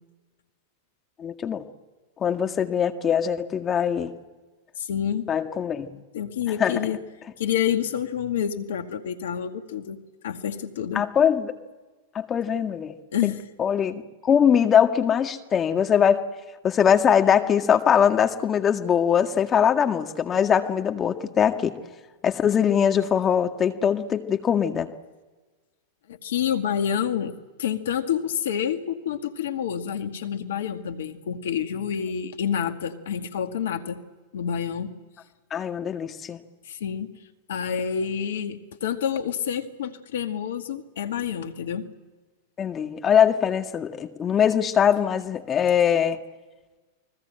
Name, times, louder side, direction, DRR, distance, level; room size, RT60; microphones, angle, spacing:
voice 1, 1.2-1.6 2.2-4.1 5.3-5.9 6.6-6.7 10.9-11.5 12.1-12.9 13.2-13.3 13.6-16.2 16.6-21.8 22.2-24.9 35.5-36.4 42.6-46.2, left 8 dB, 25° left, 6 dB, 1.9 m, -22 dB
voice 2, 4.8-5.2 6.1-7.0 7.4-10.0 10.2-11.0 13.1-13.4 26.1-27.3 27.6-34.0 34.3-34.9 36.7-37.1 37.5-41.9, left 8 dB, 75° left, 7 dB, 2.1 m, -28 dB
29.0 x 20.0 x 7.8 m, 1.3 s
hypercardioid pair, 105°, 0 cm